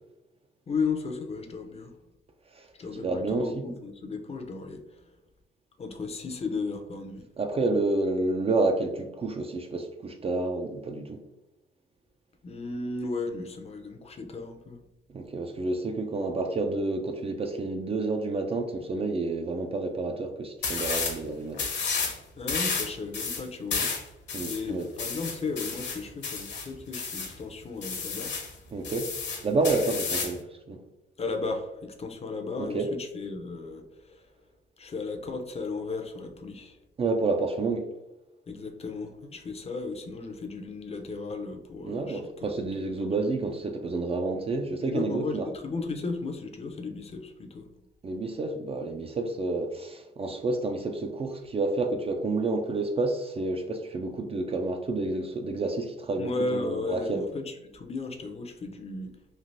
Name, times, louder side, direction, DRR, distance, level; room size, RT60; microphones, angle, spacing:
voice 1, 0.7-1.9 2.8-5.1 5.8-7.2 12.4-14.8 22.4-23.9 24.4-28.4 29.9-30.0 31.2-34.3 34.8-36.8 38.5-43.0 44.8-47.8 56.2-59.1, left 3 dB, 30° left, 4 dB, 0.5 m, -35 dB
voice 2, 2.9-3.6 7.4-11.2 15.1-21.7 23.8-23.9 24.3-24.9 28.7-29.1 29.4-30.4 30.7-30.8 32.6-32.9 37.0-37.9 41.8-45.5 48.0-57.2, right 3 dB, 30° right, 5 dB, 0.4 m, -29 dB
sound 1, 20.6-21.2 21.5-22.2 22.5-27.3 27.8-28.5 28.8-30.4, left 5 dB, 60° left, 0.8 m, -31 dB
3.2 x 2.4 x 2.5 m, 0.95 s
cardioid pair, 90°, 20 cm